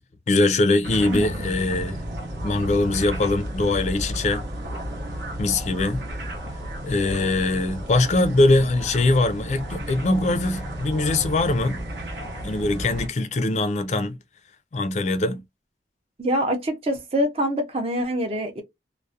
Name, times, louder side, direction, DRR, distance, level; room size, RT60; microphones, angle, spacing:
voice 1, 0.3-2.0 2.4-4.4 5.4-6.0 6.8-11.8 12.4-14.2 14.7-15.4, left 2 dB, 40° left, 0.3 m, -22 dB
sound 1, 0.8-13.1, equal, 75° right, 0.8 m, -33 dB
voice 2, 16.2-18.6, equal, 35° right, 0.5 m, -25 dB
2.3 x 2.0 x 2.6 m
head